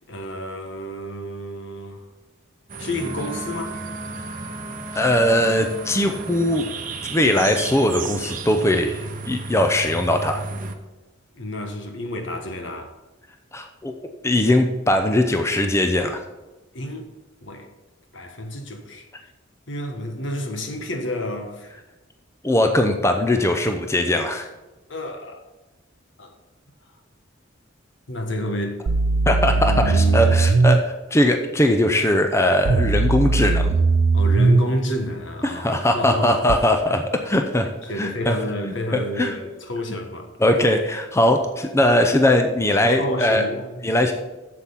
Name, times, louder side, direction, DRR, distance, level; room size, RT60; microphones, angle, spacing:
voice 1, 0.1-2.0 2.8-3.7 11.3-12.9 16.7-17.1 17.4-17.7 18.1-19.0 19.7-21.7 24.9-25.4 26.2-26.3 28.1-28.8 29.5-30.4 34.1-36.5 36.8-37.0 37.9-40.3 42.8-43.8, left 1 dB, 70° left, 1.4 m, -30 dB
sound 1, 2.7-10.7, right 4 dB, 45° right, 0.9 m, -34 dB
Wind instrument woodwind instrument, 2.9-6.6, right 1 dB, 40° left, 3.3 m, -37 dB
voice 2, 4.9-6.7 7.0-10.4 13.5-13.9 14.2-16.2 22.4-24.5 29.3-33.7 35.4-37.7 38.0-38.4 38.6-39.4 40.4-43.4 43.8-44.1, left 1 dB, 15° left, 0.6 m, -20 dB
sound 2, 28.9-30.8 32.7-34.7 36.5-36.6, right 3 dB, 80° right, 0.5 m, -18 dB
8.1 x 7.5 x 5.7 m
head